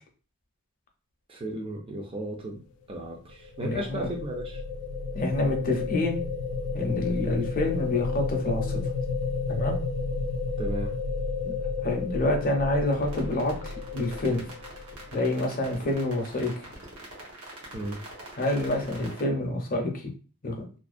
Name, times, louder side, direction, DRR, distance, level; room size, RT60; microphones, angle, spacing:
voice 1, 1.3-2.6 2.9-4.6 10.6-10.9 17.7-18.0, right 1 dB, 25° right, 1 dB, 0.3 m, -35 dB
sound 1, 3.2-15.3, left 4 dB, 90° left, 0.4 m, -32 dB
voice 2, 3.6-4.1 5.1-6.2 6.7-8.8 9.5-9.8 11.4-11.5 11.8-14.5 15.1-16.5 18.4-19.9 20.4-20.6, left 1 dB, 40° left, 3 dB, 0.5 m, -27 dB
sound 2, 12.9-19.2, right 1 dB, 90° right, 0.9 m, -44 dB
2.5 x 2.0 x 2.4 m, 0.37 s
head